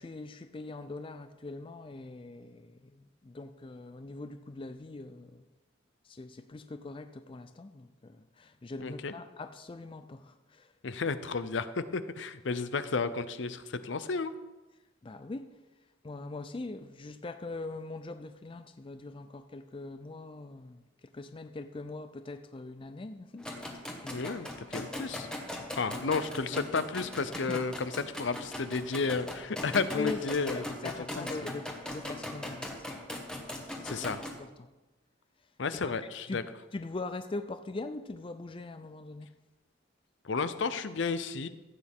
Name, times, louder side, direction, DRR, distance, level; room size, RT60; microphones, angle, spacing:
voice 1, 0.0-5.4 6.0-10.7 15.0-15.6 16.0-24.3 26.5-26.6 27.5-27.6 29.9-33.0 33.9-34.7 36.3-36.4 36.7-39.3, left 3 dB, 25° left, 0.4 m, -42 dB
voice 2, 8.8-9.1 10.8-14.3 24.1-25.3 25.8-30.6 31.2-31.3 33.8-34.2 35.6-36.4 40.2-41.5, left 4 dB, 65° left, 0.6 m, -32 dB
sound 1, 23.4-34.4, left 1 dB, 5° left, 1.3 m, -40 dB
14.5 x 8.6 x 3.6 m
head